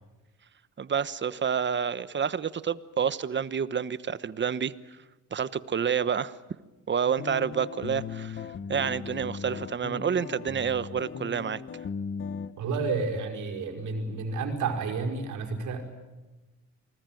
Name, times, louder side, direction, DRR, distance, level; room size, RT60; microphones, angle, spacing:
voice 1, 0.8-4.7 5.3-6.3 6.9-11.6, right 7 dB, 40° right, 15 dB, 1.1 m, -29 dB
sound 1, 7.2-12.5, left 6 dB, 40° left, 1.2 m, -37 dB
voice 2, 12.6-15.8, right 4 dB, 75° right, 2 dB, 5.1 m, -30 dB
28.0 x 20.0 x 9.2 m, 1.1 s
cardioid pair, 90°, 30 cm